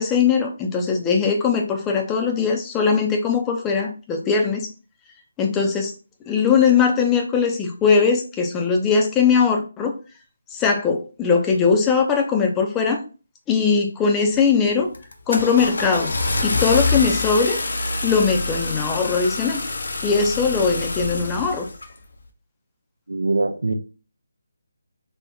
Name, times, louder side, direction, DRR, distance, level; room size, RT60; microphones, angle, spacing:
voice 1, 0.0-4.7 5.4-5.9 6.3-9.9 10.5-13.0 13.5-14.9 15.3-16.1 16.4-17.6 18.0-19.6 20.0-21.7, left 5 dB, 15° left, 2 dB, 0.4 m, -20 dB
Car / Engine starting, 14.2-14.5 14.9-21.9, left 3 dB, 65° left, 0.5 m, -26 dB
voice 2, 23.1-23.7, right 2 dB, 75° right, 7 dB, 0.4 m, -22 dB
3.5 x 2.1 x 2.7 m, 0.34 s
figure-of-eight pair, 150°, 0 cm